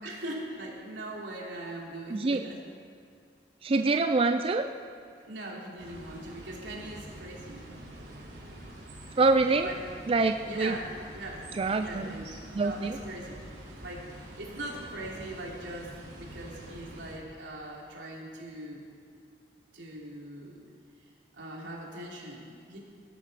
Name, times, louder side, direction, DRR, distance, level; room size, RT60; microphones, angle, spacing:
voice 1, 0.0-2.6 5.3-7.6 9.6-9.8 10.4-11.4 11.8-12.3 12.6-13.4 13.8-18.8 19.7-20.6 21.3-22.8, right 1 dB, 85° right, -3 dB, 3.3 m, -41 dB
voice 2, 2.1-2.4 3.6-4.6 9.2-9.7 10.1-10.8 11.6-12.2 12.5-13.0, right 3 dB, 30° right, 6 dB, 0.4 m, -25 dB
sound 1, 5.8-17.1, right 1 dB, 65° right, 4.3 m, -46 dB
18.0 x 11.5 x 5.7 m, 2.4 s
head